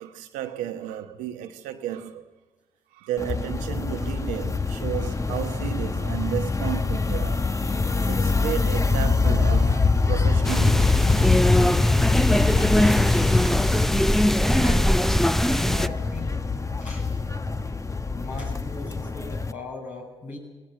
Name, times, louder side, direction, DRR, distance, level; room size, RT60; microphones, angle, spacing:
voice 1, 0.0-2.3 2.9-7.5 8.1-10.9 11.4-12.6 13.3-14.0 14.5-14.7, right 11 dB, 90° right, 1.0 m, -34 dB
sound 1, 3.2-19.5, left 4 dB, 25° left, 1.0 m, -24 dB
sound 2, 10.4-15.9, equal, 5° left, 0.6 m, -21 dB
voice 2, 14.5-14.9 15.4-16.4 16.8-17.1 18.1-20.4, left 3 dB, 75° left, 7.4 m, -37 dB
18.5 x 17.0 x 9.2 m
supercardioid pair, 50°, 13 cm